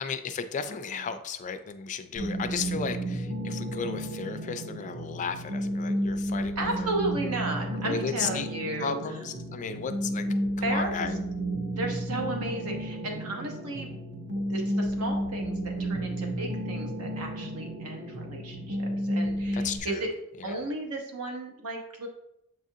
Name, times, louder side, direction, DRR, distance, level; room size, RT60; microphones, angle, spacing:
voice 1, 0.0-6.9 7.8-8.5 8.8-10.3 10.6-11.2 19.5-20.1 20.4-20.6, left 6 dB, 35° left, 10 dB, 0.3 m, -34 dB
voice 2, 0.7-1.1 2.2-2.6 6.6-9.0 10.6-11.1 11.7-14.0 14.5-20.1 20.4-22.1, right 2 dB, 80° right, 2 dB, 0.9 m, -34 dB
sound 1, 2.2-19.8, equal, 50° right, 0.7 m, -32 dB
7.3 x 2.5 x 2.7 m, 0.79 s
head